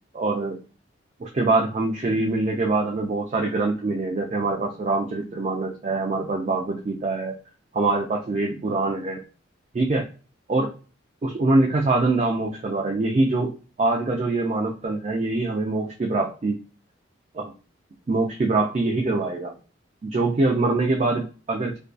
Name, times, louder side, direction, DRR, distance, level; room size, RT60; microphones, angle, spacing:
voice 1, 0.1-0.6 1.2-7.4 7.7-9.2 9.7-10.0 10.5-10.7 11.2-13.5 13.8-16.6 17.3-17.5 18.1-19.5 20.0-21.8, right 2 dB, 35° right, 0 dB, 0.3 m, -24 dB
2.5 x 2.2 x 2.2 m, 0.35 s
head